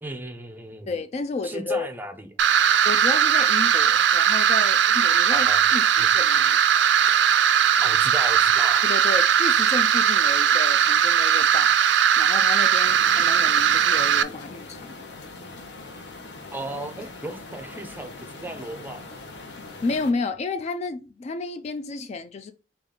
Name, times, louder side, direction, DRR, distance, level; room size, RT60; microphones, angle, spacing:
voice 1, 0.0-0.9 1.4-2.3 5.3-5.6 6.0-6.1 7.8-8.9 16.5-19.2, right 1 dB, 10° right, 0.5 m, -35 dB
voice 2, 0.9-1.9 2.8-6.6 7.0-7.2 8.8-11.8 12.2-15.0 19.8-22.5, left 3 dB, 35° left, 0.3 m, -31 dB
sound 1, 2.4-14.2, right 8 dB, 75° right, 0.4 m, -19 dB
sound 2, 12.8-20.1, left 3 dB, 70° left, 0.8 m, -41 dB
5.0 x 2.4 x 3.7 m
head